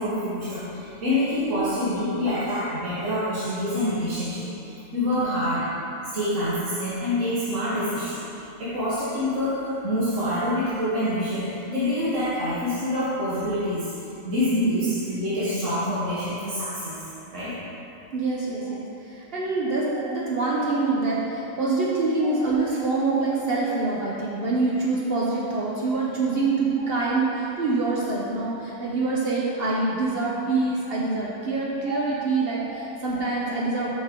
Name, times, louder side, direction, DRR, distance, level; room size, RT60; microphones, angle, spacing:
voice 1, 0.0-5.9 6.1-8.3 8.6-13.9 14.2-17.0 17.3-17.5 31.9-32.0 32.6-32.8, left 1 dB, 85° right, -10 dB, 1.7 m, -26 dB
voice 2, 18.1-33.9, right 3 dB, 55° right, -5 dB, 0.9 m, -25 dB
7.2 x 5.3 x 3.6 m, 2.8 s
omnidirectional pair, 1.2 m